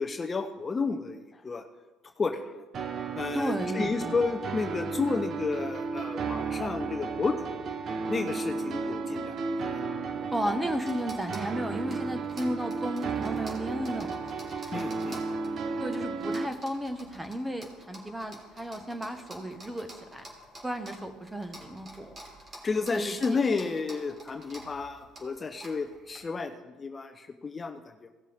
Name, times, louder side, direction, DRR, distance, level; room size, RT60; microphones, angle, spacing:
voice 1, 0.0-1.6 2.2-2.6 3.1-7.7 8.1-9.4 14.7-15.2 22.6-28.1, left 4 dB, 30° left, 5 dB, 0.7 m, -31 dB
sound 1, 2.7-16.4, right 4 dB, 50° right, 0.7 m, -33 dB
voice 2, 3.3-4.2 10.3-14.3 15.8-20.2 20.6-22.2 22.9-23.4, equal, 10° right, 7 dB, 1.2 m, -34 dB
sound 2, 10.1-26.2, right 1 dB, 35° right, 3.3 m, -49 dB
17.0 x 7.3 x 3.6 m, 1.2 s
supercardioid pair, 90°, 0 cm